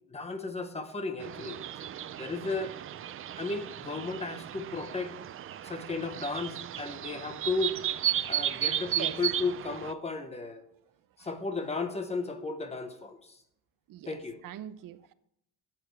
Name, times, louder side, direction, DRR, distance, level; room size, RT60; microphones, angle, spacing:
voice 1, 0.1-1.6 2.1-2.7 3.4-5.2 5.6-7.7 8.3-10.6 11.2-13.4 14.1-14.4, left 3 dB, 20° left, 1.1 m, -34 dB
sound 1, 1.2-9.9, right 11 dB, 40° right, 0.5 m, -34 dB
voice 2, 14.4-15.1, right 11 dB, 75° right, 0.7 m, -42 dB
14.0 x 8.7 x 3.3 m
cardioid pair, 155°, 33 cm